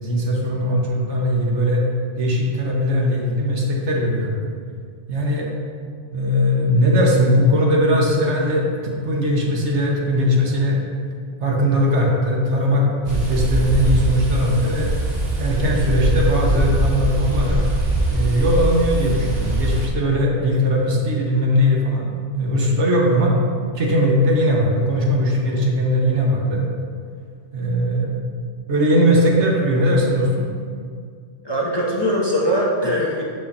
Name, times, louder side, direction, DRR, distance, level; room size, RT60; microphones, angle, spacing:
voice 1, 0.0-1.8 2.2-4.4 5.1-5.5 6.1-10.8 11.4-14.9 15.4-17.6 18.1-23.4 23.7-26.6 27.5-28.1 28.7-30.5, equal, 70° right, -2 dB, 1.4 m, -19 dB
sound 1, 13.0-19.9, right 1 dB, 35° right, 1.2 m, -22 dB
voice 2, 31.4-33.2, equal, 25° left, -4 dB, 0.8 m, -21 dB
6.4 x 5.5 x 4.2 m, 2.1 s
omnidirectional pair, 1.2 m